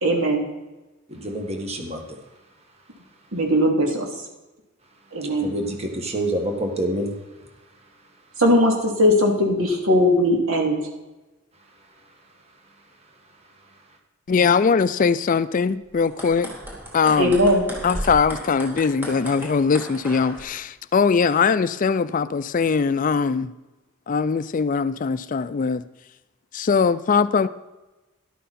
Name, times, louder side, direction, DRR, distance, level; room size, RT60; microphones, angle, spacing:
voice 1, 0.0-0.4 3.3-4.1 5.1-5.5 8.4-10.8 17.2-17.7, equal, 85° right, 2.8 m, -19 dB
voice 2, 1.1-2.2 5.2-7.1, right 1 dB, 30° right, 1.6 m, -27 dB
voice 3, 14.3-16.5 16.9-17.4 17.8-23.5 24.1-25.8 26.5-27.5, left 5 dB, 40° left, 0.4 m, -21 dB
sound 1, 15.9-20.4, equal, 10° right, 3.7 m, -35 dB
13.0 x 12.0 x 4.3 m
head